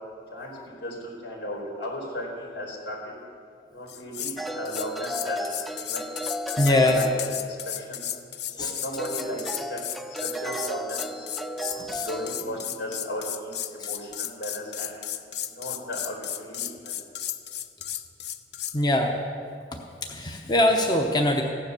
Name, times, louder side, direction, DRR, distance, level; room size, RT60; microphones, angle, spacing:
voice 1, 0.3-3.0 3.7-6.1 6.5-8.1 8.6-14.9 15.5-17.0, equal, 90° left, -1 dB, 4.3 m, -36 dB
sound 1, 3.9-4.4 4.7-18.8, left 11 dB, 65° left, 0.6 m, -34 dB
sound 2, 4.4-7.7 9.0-12.4, right 1 dB, ahead, 0.4 m, -34 dB
voice 2, 6.6-7.0 8.5-8.7 11.8-12.1 13.8-13.9 18.7-19.2 19.7-19.8 20.1-21.4, left 1 dB, 25° left, 2 dB, 0.9 m, -23 dB
15.5 x 10.0 x 6.9 m, 2.4 s
head